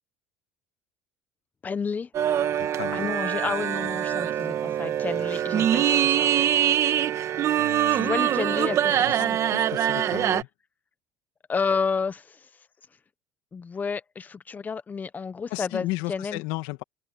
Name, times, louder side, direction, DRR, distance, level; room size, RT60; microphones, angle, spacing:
voice 1, 1.6-2.1 2.9-6.3 7.9-9.4 11.5-12.5 13.5-16.4, left 5 dB, 25° left, 1.2 m, -31 dB
sound 1, 2.1-10.4, right 10 dB, 45° right, 1.5 m, -24 dB
voice 2, 2.6-3.1 7.6-8.2 8.9-10.5 15.5-16.8, left 20 dB, 80° left, 1.5 m, -35 dB
supercardioid pair, 110°, 7 cm